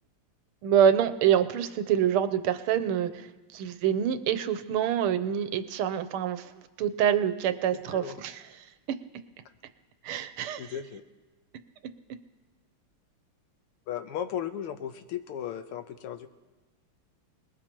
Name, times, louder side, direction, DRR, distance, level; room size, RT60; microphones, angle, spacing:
voice 1, 0.6-3.3 3.5-8.4 10.0-10.7, right 9 dB, 80° right, 10 dB, 1.6 m, -26 dB
voice 2, 7.7-8.2 8.5-8.6 10.6-11.0 13.9-16.3, left 9 dB, 85° left, 8 dB, 1.8 m, -36 dB
24.0 x 20.0 x 3.0 m, 1.2 s
omnidirectional pair, 2.4 m